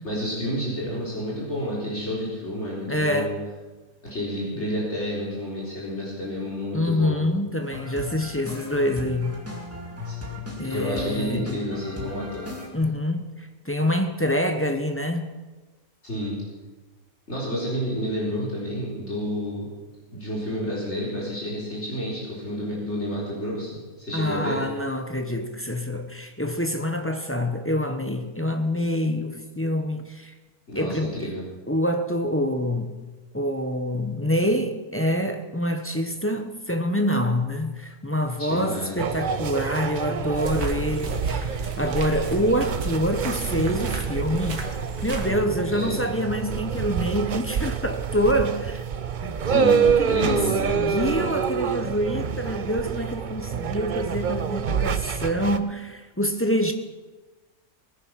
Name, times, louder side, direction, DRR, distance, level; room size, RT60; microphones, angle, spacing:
voice 1, 0.0-3.3 4.0-7.2 10.0-10.1 10.7-12.5 16.0-16.4 17.3-19.7 20.1-24.6 30.7-31.4 38.4-39.0 45.7-46.0 49.5-51.3, equal, 45° left, 4.4 m, -30 dB
voice 2, 2.9-3.3 4.6-4.7 6.7-9.4 10.4-11.5 12.7-15.3 24.1-30.3 30.7-31.3 31.7-32.9 33.3-44.6 45.0-48.8 49.2-56.7, equal, 10° left, 0.8 m, -26 dB
sound 1, 7.6-12.7, left 3 dB, 10° right, 2.4 m, -36 dB
sound 2, 39.0-55.6, right 7 dB, 50° right, 0.6 m, -27 dB
sound 3, 40.3-45.3, right 3 dB, 85° right, 2.1 m, -32 dB
20.0 x 10.0 x 5.9 m
omnidirectional pair, 1.6 m